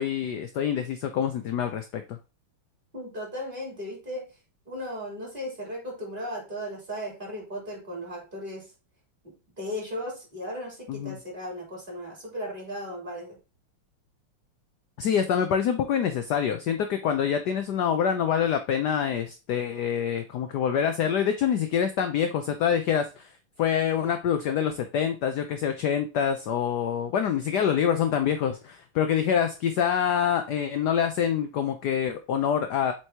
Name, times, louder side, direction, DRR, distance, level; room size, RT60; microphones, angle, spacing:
voice 1, 0.0-2.2 10.9-11.2 15.0-23.3 23.6-32.9, left 8 dB, 70° left, 8 dB, 1.0 m, -26 dB
voice 2, 2.9-4.2 4.7-8.7 9.2-13.4, equal, 25° right, -3 dB, 3.5 m, -36 dB
7.7 x 4.6 x 2.9 m, 0.32 s
omnidirectional pair, 2.3 m